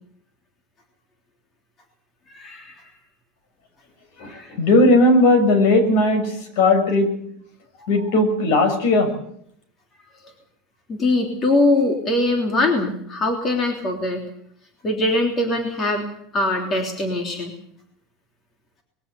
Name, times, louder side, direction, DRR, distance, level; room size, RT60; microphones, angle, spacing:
voice 1, 2.3-2.8 4.2-4.5 10.9-14.2 14.8-16.0 16.3-17.5, left 2 dB, 25° left, 3 dB, 3.3 m, -22 dB
voice 2, 4.2-7.1 7.8-9.1, left 2 dB, 65° left, 9 dB, 6.3 m, -17 dB
22.0 x 16.0 x 8.3 m, 0.69 s
cardioid pair, 175°, 0 cm